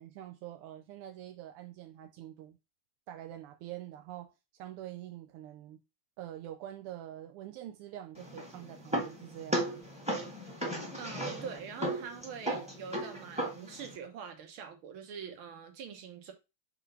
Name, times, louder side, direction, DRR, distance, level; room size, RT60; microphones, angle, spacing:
voice 1, 0.0-2.6 3.1-5.8 6.2-9.8, right 12 dB, 90° right, 1.6 m, -45 dB
sound 1, 8.2-14.0, right 1 dB, 5° right, 1.1 m, -36 dB
voice 2, 11.0-16.3, right 7 dB, 70° right, 2.0 m, -44 dB
4.5 x 4.1 x 5.6 m
omnidirectional pair, 2.4 m